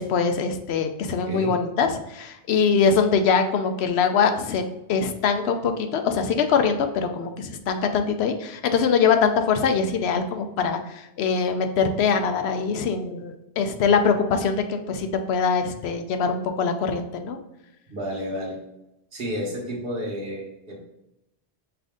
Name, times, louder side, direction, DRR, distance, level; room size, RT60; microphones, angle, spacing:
voice 1, 0.0-4.6 4.9-17.4, left 5 dB, 75° left, 6 dB, 0.8 m, -23 dB
voice 2, 1.3-1.6 17.9-18.6 19.1-20.8, equal, 60° right, -1 dB, 1.4 m, -31 dB
5.7 x 2.6 x 3.6 m, 0.89 s
omnidirectional pair, 1.1 m